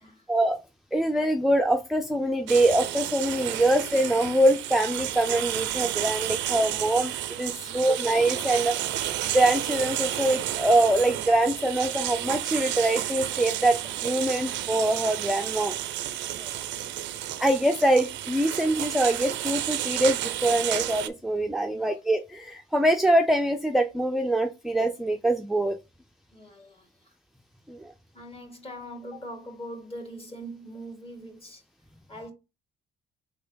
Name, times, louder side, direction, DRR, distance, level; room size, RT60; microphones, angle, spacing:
voice 1, 0.9-8.8 9.2-15.7 17.4-25.8 27.7-27.9, right 1 dB, ahead, 0.5 m, -24 dB
sound 1, 2.5-21.1, right 13 dB, 80° right, 0.5 m, -31 dB
voice 2, 16.3-16.8 21.7-21.9 26.3-27.1 28.1-31.6 32.1-32.3, equal, 30° left, 1.9 m, -42 dB
3.9 x 3.2 x 3.8 m
supercardioid pair, 60°, 19 cm